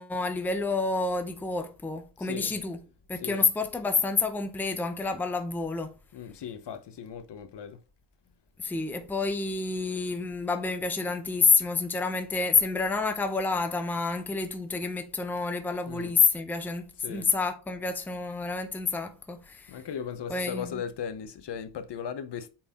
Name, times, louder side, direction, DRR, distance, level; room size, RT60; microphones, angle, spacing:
voice 1, 0.0-2.8 3.1-5.9 8.6-19.8 20.3-20.8, left 4 dB, 5° left, 0.6 m, -28 dB
voice 2, 2.2-2.5 3.2-3.4 6.1-7.8 15.9-16.1 17.0-17.3 19.7-22.5, left 7 dB, 55° left, 0.8 m, -37 dB
8.6 x 4.5 x 2.9 m
wide cardioid pair, 175°, 49 cm